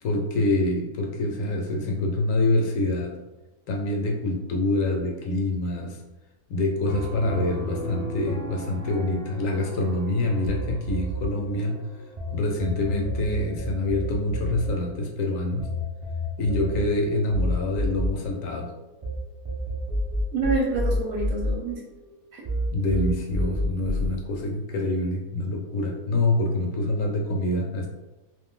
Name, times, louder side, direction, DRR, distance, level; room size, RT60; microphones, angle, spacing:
voice 1, 0.0-3.2 3.7-6.0 6.5-11.8 12.3-15.7 16.4-18.7 22.7-27.9, left 2 dB, 70° left, 1 dB, 0.9 m, -26 dB
Piano, 6.9-12.4, equal, 40° left, 0.6 m, -38 dB
sound 1, 10.5-12.3 12.6-19.1 19.5-22.1 22.5-24.1, equal, 45° right, 0.4 m, -29 dB
voice 2, 20.3-21.9 22.3-22.4, right 3 dB, 70° right, -3 dB, 1.0 m, -27 dB
2.6 x 2.5 x 3.6 m, 1.0 s
omnidirectional pair, 1.6 m